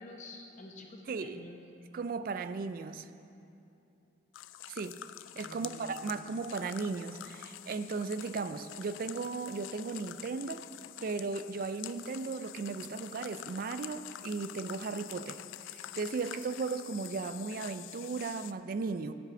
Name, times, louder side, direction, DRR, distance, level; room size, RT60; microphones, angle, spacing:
voice 1, 0.0-1.6 5.3-6.0, left 2 dB, 40° left, 2 dB, 0.9 m, -49 dB
voice 2, 1.1-1.4 1.9-3.1 4.7-5.0 5.4-10.7 11.0-15.4 15.6-19.1, right 4 dB, 50° right, 12 dB, 0.3 m, -36 dB
sound 1, 4.3-18.5, left 13 dB, 80° left, 0.3 m, -47 dB
8.2 x 7.5 x 6.9 m, 2.8 s
head